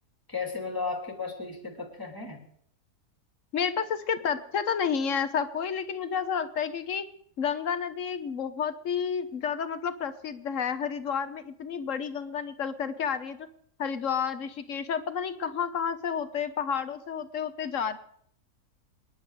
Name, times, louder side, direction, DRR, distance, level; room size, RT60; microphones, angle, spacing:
voice 1, 0.3-2.5, left 4 dB, 15° left, 3 dB, 2.8 m, -34 dB
voice 2, 3.5-7.1 7.4-13.4 13.8-18.0, left 7 dB, 55° left, 11 dB, 1.3 m, -30 dB
26.5 x 10.5 x 4.8 m, 0.66 s
omnidirectional pair, 1.6 m